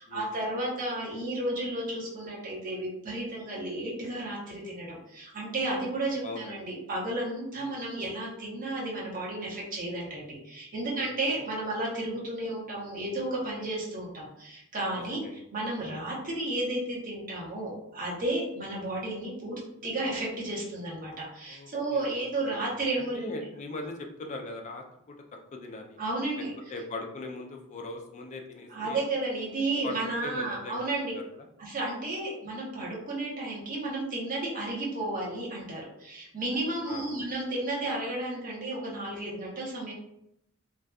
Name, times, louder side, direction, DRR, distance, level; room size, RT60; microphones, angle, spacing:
voice 1, 0.0-23.2 26.0-26.5 28.7-31.1 31.6-39.9, right 2 dB, 40° right, -4 dB, 0.8 m, -33 dB
voice 2, 6.2-6.6 7.6-7.8 10.9-11.5 14.9-15.4 21.5-22.7 23.0-25.2 25.5-26.0 26.4-29.0 29.8-30.8 31.1-31.5 36.8-37.1, left 2 dB, 35° left, 3 dB, 0.3 m, -41 dB
2.6 x 2.2 x 2.2 m, 0.79 s
head